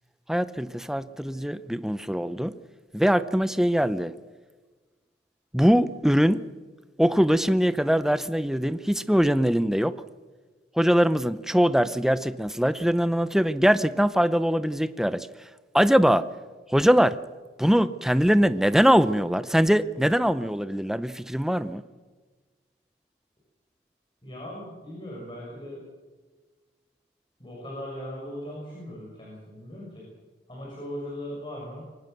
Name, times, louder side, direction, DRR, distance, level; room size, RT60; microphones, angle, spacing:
voice 1, 0.3-2.5 2.9-4.1 5.5-6.4 7.0-9.9 10.7-15.3 15.7-16.3 16.7-17.2 17.6-21.8, equal, 5° right, 13 dB, 0.7 m, -22 dB
voice 2, 24.2-25.8 27.4-30.1 30.5-31.9, equal, 30° left, -4 dB, 6.3 m, -38 dB
24.0 x 18.5 x 6.7 m, 1.3 s
head